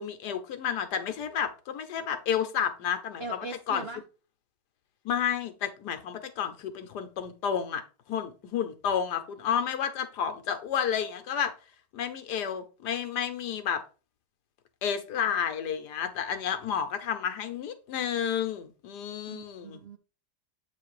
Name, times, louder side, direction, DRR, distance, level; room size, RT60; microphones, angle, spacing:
voice 1, 0.0-3.2 3.7-3.8 5.0-7.8 8.1-11.5 11.9-13.8 14.8-19.8, left 8 dB, 75° left, 8 dB, 1.4 m, -31 dB
voice 2, 3.2-4.0 19.3-20.0, right 3 dB, 65° right, 5 dB, 0.6 m, -40 dB
8.1 x 3.3 x 4.7 m, 0.34 s
omnidirectional pair, 1.8 m